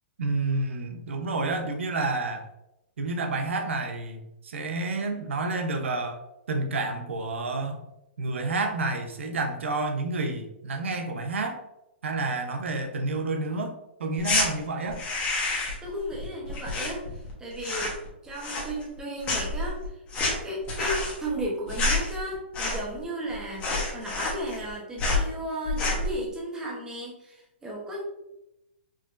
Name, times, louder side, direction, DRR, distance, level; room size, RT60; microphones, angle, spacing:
voice 1, 0.2-2.5 3.0-6.2 6.5-7.8 8.2-11.6 12.0-13.7 14.0-15.0, right 3 dB, 90° right, 5 dB, 0.7 m, -29 dB
sound 1, 14.2-14.5 14.9-15.9 16.1-17.3 17.6-18.1 18.4-19.0 19.2-23.0 23.3-23.4 23.6-24.7 25.0-25.3 25.7-26.1, left 2 dB, 20° left, 1.1 m, -28 dB
voice 2, 15.8-17.1 17.4-18.0 18.2-19.8 20.4-28.0, right 1 dB, 10° right, -3 dB, 0.9 m, -34 dB
4.9 x 2.9 x 2.5 m, 0.88 s
hypercardioid pair, 155°, 6 cm